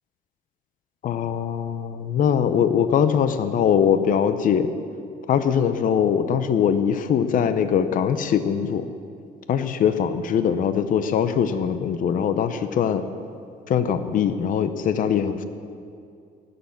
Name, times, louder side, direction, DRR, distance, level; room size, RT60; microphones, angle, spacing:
voice 1, 1.0-4.7 5.3-8.9 9.5-13.0 13.7-15.4, left 8 dB, 55° left, 10 dB, 0.8 m, -22 dB
19.0 x 6.9 x 7.1 m, 2.4 s
cardioid pair, 110°, 17 cm